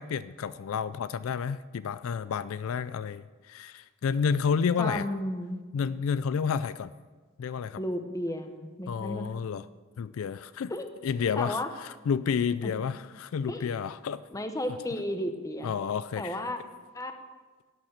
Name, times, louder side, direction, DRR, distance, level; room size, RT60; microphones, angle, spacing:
voice 1, 0.0-5.1 5.7-6.9 7.4-7.8 8.9-9.6 10.0-10.7 11.0-14.2 15.6-16.4, left 6 dB, 70° left, 15 dB, 0.3 m, -30 dB
voice 2, 4.8-5.6 7.8-9.3 10.7-10.9 11.4-11.7 12.6-12.7 13.5-13.7 14.3-15.7 16.2-16.6 16.9-17.1, left 1 dB, 15° left, 7 dB, 0.9 m, -33 dB
11.5 x 9.1 x 6.4 m, 1.4 s
head